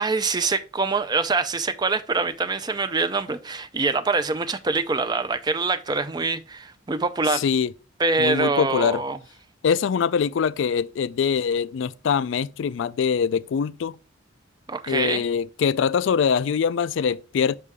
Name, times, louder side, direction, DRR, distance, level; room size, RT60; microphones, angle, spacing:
voice 1, 0.0-7.4 8.0-9.2 14.7-15.2, right 3 dB, 20° right, 0.4 m, -24 dB
voice 2, 7.3-7.7 8.2-9.0 9.6-14.0 14.9-17.6, left 6 dB, 60° left, 0.3 m, -23 dB
6.7 x 5.5 x 3.5 m
head